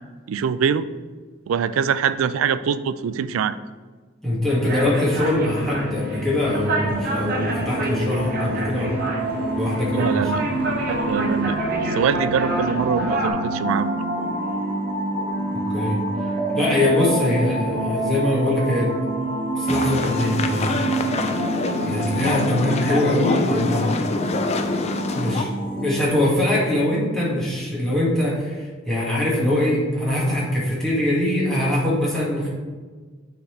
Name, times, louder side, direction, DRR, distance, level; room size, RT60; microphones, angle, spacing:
voice 1, 0.3-0.9 1.5-3.6 9.9-10.4 10.9-13.9, right 7 dB, 85° right, 13 dB, 0.3 m, -23 dB
voice 2, 4.2-9.0 9.5-10.5 15.3-16.0 16.6-18.9 19.6-20.9 21.8-24.1 25.1-32.5, left 1 dB, ahead, -8 dB, 1.9 m, -22 dB
sound 1, 4.5-13.3, right 1 dB, 50° right, 1.2 m, -29 dB
sound 2, 6.9-26.1, right 2 dB, 25° right, 1.4 m, -27 dB
sound 3, 19.7-25.4, left 3 dB, 35° left, 0.4 m, -26 dB
8.1 x 4.0 x 3.3 m, 1.4 s
head